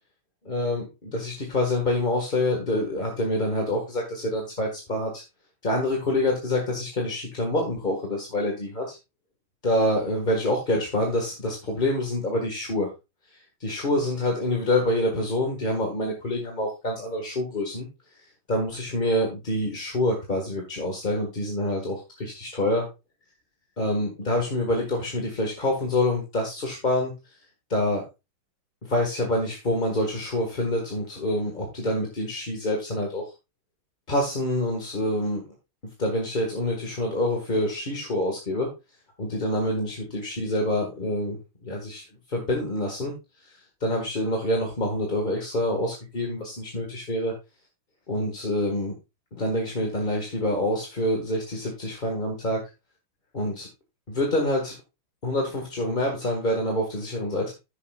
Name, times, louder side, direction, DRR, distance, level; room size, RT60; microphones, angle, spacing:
voice 1, 0.4-5.2 5.6-9.0 9.6-12.9 13.3-17.9 18.1-22.9 23.8-27.1 27.7-28.0 28.8-33.3 34.1-35.4 36.0-38.7 39.2-42.0 42.3-43.1 43.4-47.3 48.1-48.9 49.3-52.6 53.3-53.7 54.1-54.8 55.2-57.5, left 1 dB, 25° left, 1 dB, 1.5 m, -26 dB
13.5 x 7.1 x 2.3 m, 0.25 s
omnidirectional pair, 2.4 m